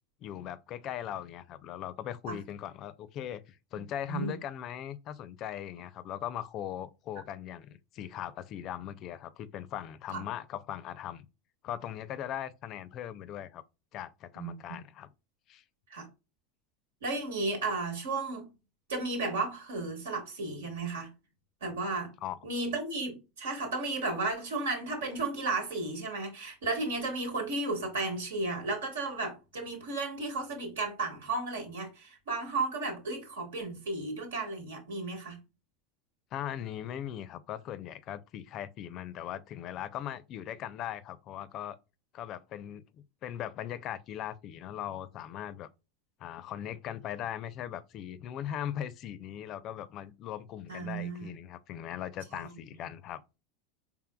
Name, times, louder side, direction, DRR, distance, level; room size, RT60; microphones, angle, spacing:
voice 1, 0.2-11.3 11.6-13.6 13.9-15.1 15.5-15.6 22.2-22.4 36.3-41.8 42.1-45.7 46.2-53.4, left 10 dB, 45° left, 0.4 m, -39 dB
voice 2, 14.4-14.8 15.9-16.1 17.0-18.5 18.9-21.1 21.6-22.1 22.4-35.4 50.7-51.3 52.3-52.5, right 3 dB, 75° right, 1.4 m, -34 dB
4.5 x 3.5 x 2.2 m
hypercardioid pair, 85°, 0 cm